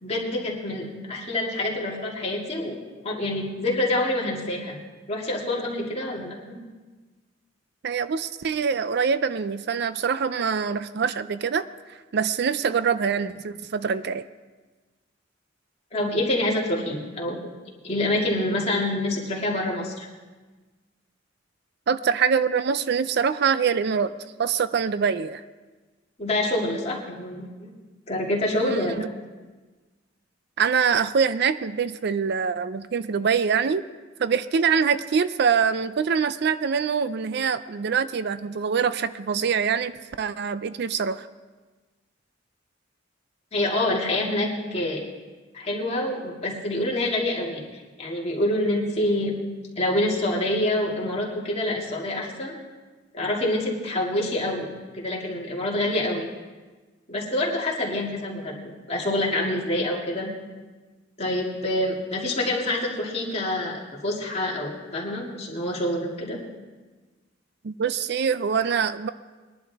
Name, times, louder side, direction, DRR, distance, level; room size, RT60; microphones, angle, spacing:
voice 1, 0.0-2.8 3.0-4.8 5.1-6.6 15.9-17.4 17.8-20.1 26.2-27.7 28.1-29.1 43.5-45.0 45.5-49.3 49.8-52.5 53.1-56.3 57.1-60.3 61.2-66.4, left 1 dB, 35° left, -3 dB, 2.4 m, -26 dB
voice 2, 7.8-11.6 12.1-14.3 21.9-24.1 24.4-25.4 28.5-28.9 30.6-33.8 34.2-39.9 40.2-41.3 67.6-69.1, right 6 dB, 60° right, 14 dB, 0.4 m, -24 dB
21.5 x 11.0 x 3.5 m, 1.3 s
head